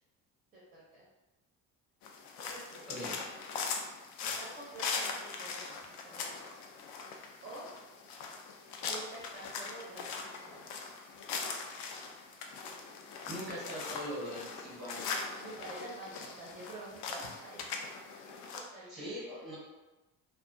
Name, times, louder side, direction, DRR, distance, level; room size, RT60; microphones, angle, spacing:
voice 1, 0.5-1.1 2.5-2.9 4.2-6.6 7.4-7.7 8.8-10.7 15.4-17.9 18.5-19.1, right 1 dB, 25° right, -7 dB, 0.4 m, -48 dB
sound 1, 2.0-18.6, left 5 dB, 85° left, 0.5 m, -41 dB
voice 2, 2.9-3.2 13.3-15.1 18.9-19.6, equal, ahead, -8 dB, 0.8 m, -41 dB
2.3 x 2.2 x 2.5 m, 1.1 s
cardioid pair, 170°, 36 cm